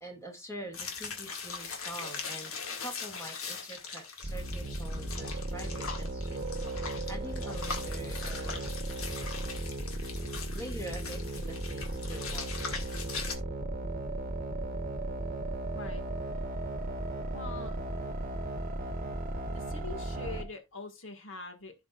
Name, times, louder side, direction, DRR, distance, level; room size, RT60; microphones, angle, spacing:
voice 1, 0.0-6.4 7.1-8.7 10.5-12.5, right 1 dB, 15° left, 2.2 m, -45 dB
sound 1, 0.7-13.4, left 5 dB, 75° left, 2.2 m, -41 dB
sound 2, 4.2-20.4, right 1 dB, 40° right, 1.2 m, -36 dB
voice 2, 15.7-16.0 17.3-17.8 19.5-21.7, left 3 dB, 60° left, 1.9 m, -43 dB
15.5 x 5.2 x 2.5 m
head